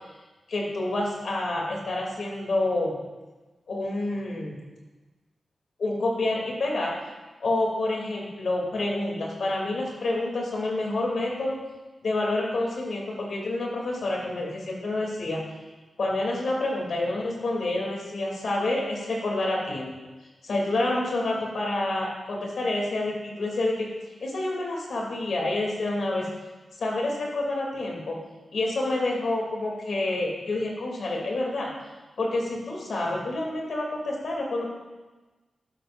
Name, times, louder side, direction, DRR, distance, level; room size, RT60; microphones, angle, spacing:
voice 1, 0.5-2.9 3.7-4.6 5.8-6.9 7.4-11.6 12.0-15.4 16.0-19.9 20.4-23.9 24.2-26.3 26.8-28.2 28.5-31.7 32.2-34.7, left 2 dB, 70° left, -2 dB, 2.9 m, -28 dB
12.0 x 11.5 x 2.6 m, 1.2 s
cardioid pair, 75°, 0 cm